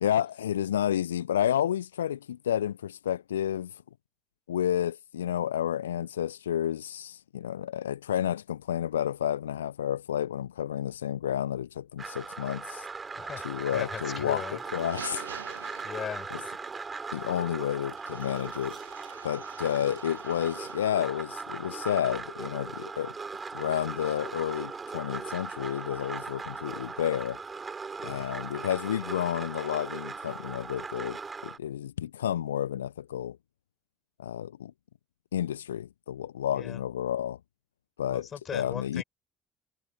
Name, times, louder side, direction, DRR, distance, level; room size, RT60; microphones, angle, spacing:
voice 1, 0.0-3.8 4.5-12.9 13.4-15.2 16.3-16.4 17.1-18.8 19.2-23.1 23.5-27.4 28.0-33.4 34.2-34.7 35.3-37.4 38.0-39.0, left 10 dB, 80° left, 0.7 m, -31 dB
sound 1, 12.0-31.6, right 4 dB, 25° right, 6.9 m, -39 dB
voice 2, 13.1-14.6 15.8-16.3 36.5-36.8 38.1-39.0, left 8 dB, 40° left, 7.3 m, -39 dB
sound 2, 14.5-16.4 18.0-21.0, right 8 dB, 80° right, 2.0 m, -47 dB
figure-of-eight pair, 55°, 0 cm